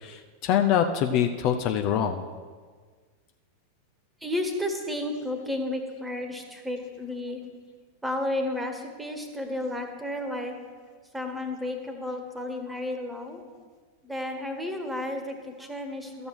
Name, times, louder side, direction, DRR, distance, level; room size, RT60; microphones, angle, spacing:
voice 1, 0.0-2.2, left 9 dB, 40° left, 6 dB, 0.6 m, -24 dB
voice 2, 4.2-7.4 8.0-10.5 11.1-13.4 14.0-16.3, left 1 dB, 5° right, 5 dB, 1.5 m, -32 dB
13.0 x 6.9 x 6.1 m, 1.5 s
figure-of-eight pair, 90°, 0 cm